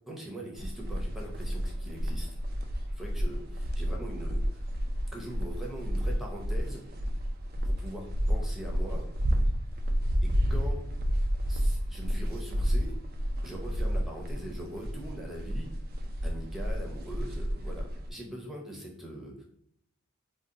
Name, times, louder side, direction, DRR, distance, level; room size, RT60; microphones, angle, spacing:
voice 1, 0.1-2.3 2.7-4.6 5.1-6.8 7.6-9.1 10.2-10.8 11.5-12.9 13.4-15.7 16.2-19.4, equal, ahead, -1 dB, 0.6 m, -42 dB
sound 1, 0.6-18.1, equal, 45° right, 0.4 m, -31 dB
2.6 x 2.0 x 3.7 m, 0.71 s
head